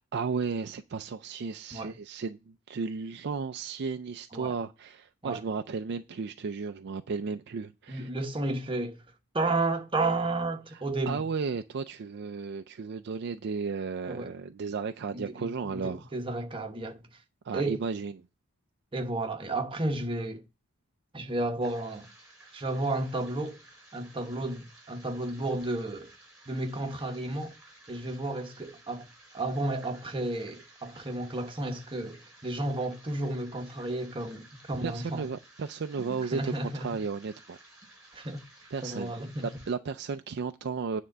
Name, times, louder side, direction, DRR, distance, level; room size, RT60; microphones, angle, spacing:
voice 1, 0.0-8.1 10.7-16.1 17.4-18.3 34.8-37.6 38.2-38.3 38.7-39.1 39.4-41.0, right 5 dB, 50° right, 0.4 m, -34 dB
voice 2, 7.9-9.0 9.3-11.2 14.1-14.3 15.1-17.0 17.5-17.8 18.9-20.4 21.1-22.1 22.5-23.6 23.9-26.1 26.5-27.5 27.9-29.1 29.3-35.2 36.1-36.7 38.1-38.4 38.8-39.5, right 2 dB, 25° right, 1.0 m, -32 dB
sound 1, 21.6-39.7, right 2 dB, 5° right, 3.8 m, -55 dB
9.3 x 3.7 x 6.7 m
head